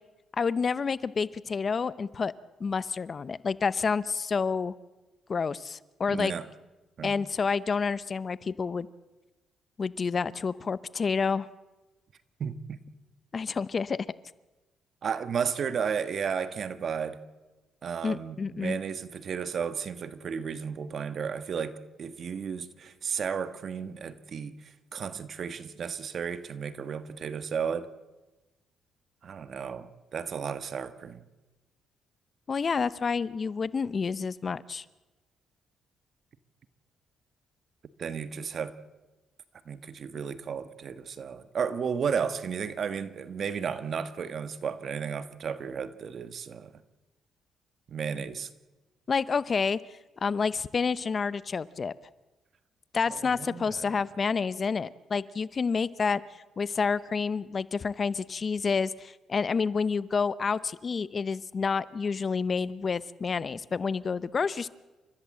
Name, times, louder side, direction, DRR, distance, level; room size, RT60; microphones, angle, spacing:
voice 1, 0.4-2.3 2.6-4.7 5.3-6.3 7.0-8.9 9.8-11.5 13.3-14.1 18.0-18.8 32.5-34.8 49.1-49.8 50.2-51.9 52.9-56.2 56.6-64.7, left 5 dB, 40° left, 18 dB, 0.7 m, -29 dB
voice 2, 6.1-6.4 7.0-7.1 12.4-12.8 15.0-17.2 17.8-27.9 29.2-31.2 38.0-38.8 39.6-46.7 47.9-48.5 53.1-53.9, right 6 dB, 55° right, 12 dB, 1.4 m, -33 dB
29.5 x 14.0 x 7.6 m, 1.1 s
cardioid pair, 90°, 0 cm